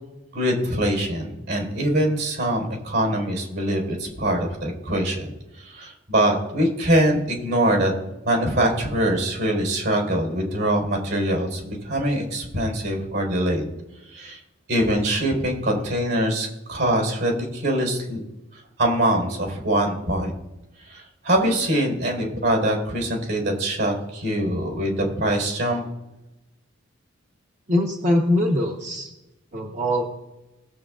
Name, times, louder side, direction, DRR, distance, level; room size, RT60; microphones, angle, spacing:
voice 1, 0.3-5.3 5.6-7.9 8.2-13.7 14.1-14.4 14.7-18.2 18.8-20.3 20.9-25.8, right 1 dB, 70° right, 1 dB, 4.4 m, -23 dB
voice 2, 27.7-29.1 29.5-30.1, left 1 dB, 35° right, -1 dB, 1.0 m, -22 dB
20.5 x 7.9 x 2.5 m, 0.98 s
head